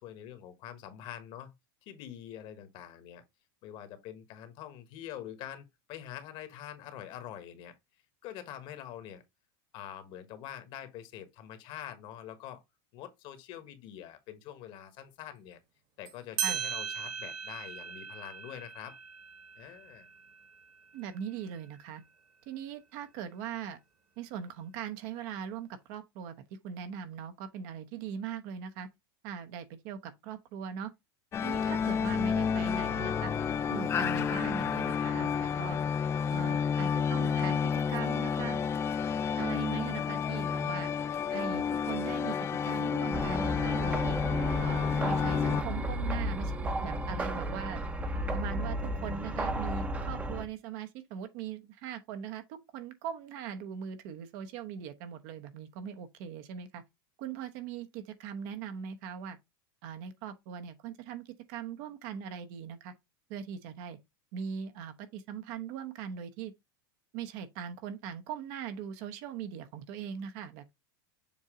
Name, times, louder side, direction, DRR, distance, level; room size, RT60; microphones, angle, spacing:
voice 1, 0.0-1.5 1.8-3.2 3.6-7.8 8.2-9.2 9.7-12.6 12.9-15.6 16.0-19.0 19.5-20.1, left 11 dB, 45° left, 1.4 m, -45 dB
sound 1, 16.0-16.1 16.4-21.5, right 8 dB, 40° right, 1.4 m, -39 dB
voice 2, 20.9-22.0 22.5-23.8 24.2-26.3 26.6-28.9 29.2-30.9 31.4-33.3 33.7-35.8 36.3-38.6 39.4-40.9 41.3-42.4 42.6-44.2 44.6-46.5 46.8-47.8 48.3-56.8 57.2-59.4 59.8-62.9 63.3-64.0 64.3-66.5 67.1-70.7, right 8 dB, 55° right, 1.0 m, -40 dB
sound 2, 31.3-45.6, left 7 dB, 20° left, 0.4 m, -30 dB
sound 3, 43.1-50.4, right 1 dB, 10° right, 0.8 m, -33 dB
7.2 x 2.7 x 4.9 m
supercardioid pair, 145°, 12 cm